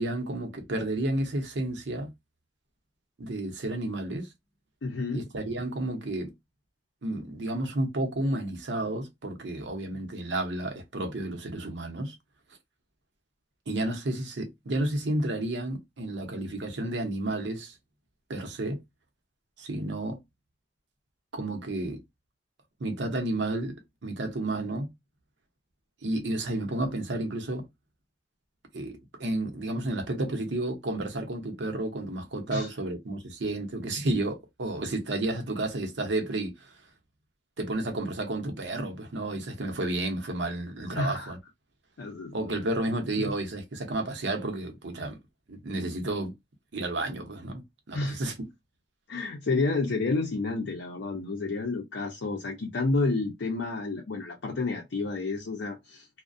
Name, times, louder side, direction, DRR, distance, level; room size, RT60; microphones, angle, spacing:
voice 1, 0.0-2.1 3.2-4.3 5.1-6.3 7.0-12.1 13.7-17.8 18.3-18.8 19.6-20.2 21.3-22.0 22.8-24.9 26.0-27.7 28.7-36.7 37.6-41.4 42.3-45.2 45.5-46.3 46.7-48.4, right 2 dB, 80° right, 0.7 m, -31 dB
voice 2, 4.8-5.3 32.5-32.7 41.0-41.3 42.0-42.6 43.2-43.3 47.9-48.2 49.1-56.1, left 3 dB, 80° left, 0.5 m, -30 dB
2.3 x 2.1 x 2.5 m
head